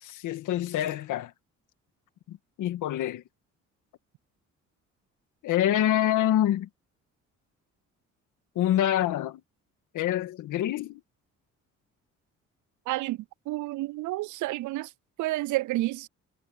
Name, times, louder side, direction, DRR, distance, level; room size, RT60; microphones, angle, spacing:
voice 1, 0.0-1.3 2.3-3.2 5.4-6.7 8.6-9.4 9.9-11.0, left 12 dB, 85° left, 1.9 m, -26 dB
voice 2, 12.9-13.2 13.5-14.9 15.2-16.1, right 18 dB, 75° right, 0.4 m, -30 dB
cardioid pair, 90°, 30 cm